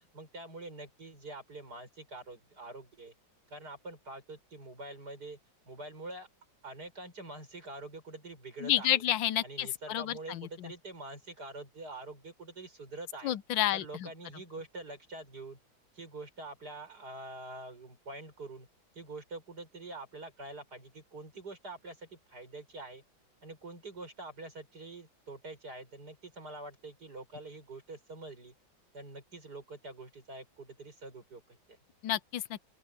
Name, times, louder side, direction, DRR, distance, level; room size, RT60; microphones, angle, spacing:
voice 1, 0.1-3.1 3.5-5.4 5.7-6.3 6.6-9.0 9.4-13.4 13.7-15.6 15.9-18.7 19.0-23.0 23.4-28.5 28.9-31.4 31.7-31.8, right 2 dB, 55° right, 7.4 m, -45 dB
voice 2, 8.6-10.7 13.2-14.1 32.0-32.6, left 12 dB, 80° left, 1.4 m, -30 dB
open air
omnidirectional pair, 2.0 m